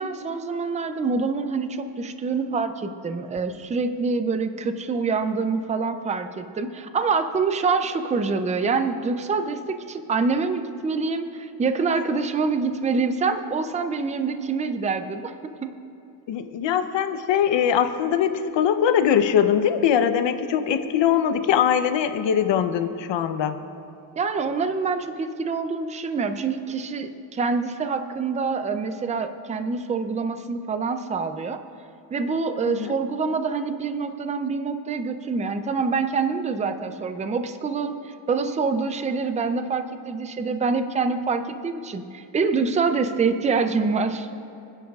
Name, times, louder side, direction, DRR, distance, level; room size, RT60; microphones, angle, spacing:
voice 1, 0.0-15.7 24.2-31.6 32.1-44.3, right 4 dB, 15° right, 9 dB, 0.3 m, -26 dB
voice 2, 16.3-23.6 32.7-32.9, left 8 dB, 60° left, 9 dB, 0.8 m, -22 dB
29.0 x 10.0 x 2.4 m, 2.8 s
cardioid pair, 165°, 48 cm